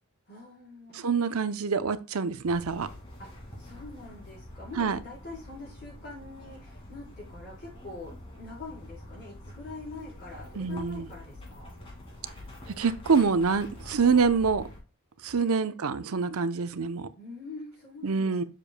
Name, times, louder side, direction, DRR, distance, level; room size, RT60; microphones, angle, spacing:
voice 1, 0.3-1.2 3.2-3.3 3.6-11.7 15.3-16.0 17.2-18.5, left 3 dB, 50° left, 3.7 m, -44 dB
voice 2, 0.9-2.9 4.8-5.0 10.6-11.1 12.8-14.6 15.2-17.1 18.0-18.4, right 5 dB, 75° right, 0.7 m, -26 dB
sound 1, 2.4-14.8, left 1 dB, 25° left, 2.1 m, -46 dB
7.5 x 6.7 x 2.2 m
head